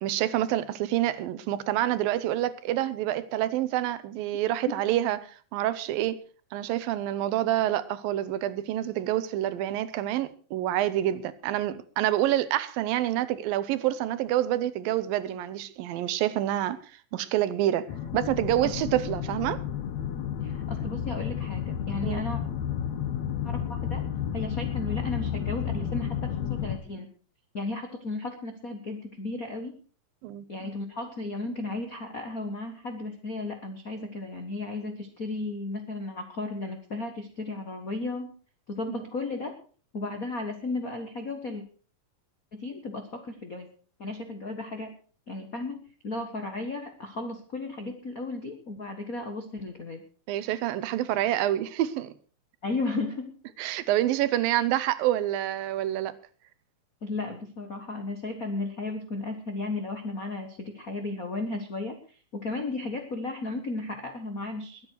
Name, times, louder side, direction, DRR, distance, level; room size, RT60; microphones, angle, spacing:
voice 1, 0.0-6.2 6.5-16.8 17.1-17.9 18.1-19.6 22.0-22.2 30.2-30.7 39.0-39.1 50.3-52.1 53.6-56.1, right 13 dB, 80° right, 2.6 m, -27 dB
sound 1, 17.9-26.8, left 9 dB, 60° left, 2.1 m, -31 dB
voice 2, 20.4-22.4 23.4-27.1 27.5-29.7 30.5-38.3 38.7-39.5 39.9-41.6 42.5-43.7 44.0-44.9 45.3-50.0 52.6-53.3 57.0-64.8, left 2 dB, 90° left, 0.7 m, -34 dB
21.5 x 8.8 x 4.6 m
omnidirectional pair, 4.1 m